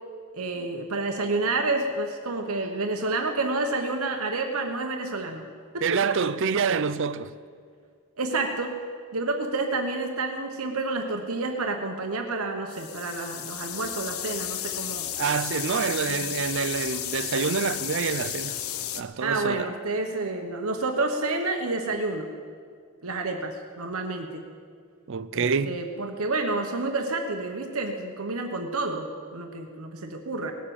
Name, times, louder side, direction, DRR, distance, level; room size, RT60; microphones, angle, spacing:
voice 1, 0.3-5.5 5.7-6.2 8.2-8.8 9.1-15.1 16.1-16.4 19.2-22.3 23.0-24.4 25.3-30.5, right 3 dB, 90° right, 1.2 m, -29 dB
voice 2, 5.8-7.3 15.2-18.6 18.9-19.7 25.1-25.8, right 5 dB, 60° right, 0.5 m, -27 dB
sound 1, 12.7-19.0, left 11 dB, 80° left, 0.7 m, -33 dB
18.5 x 7.5 x 8.8 m
head